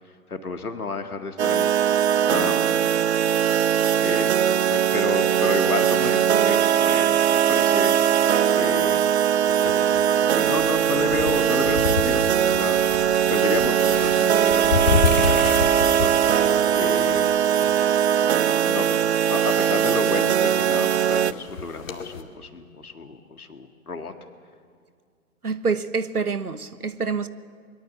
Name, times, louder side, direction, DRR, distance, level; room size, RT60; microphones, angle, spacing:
voice 1, 0.3-1.7 2.3-2.8 4.0-4.3 4.7-8.0 8.5-9.0 10.4-12.3 12.5-12.8 13.3-16.4 16.8-17.3 18.6-19.0 19.3-24.1, left 3 dB, 80° left, 2.0 m, -31 dB
sound 1, 1.4-21.3, right 9 dB, 50° right, 0.6 m, -20 dB
sound 2, 9.5-22.2, left 4 dB, 60° left, 2.4 m, -30 dB
voice 2, 25.4-27.3, right 5 dB, 85° right, 1.3 m, -26 dB
23.0 x 21.5 x 7.4 m
figure-of-eight pair, 130°, 44 cm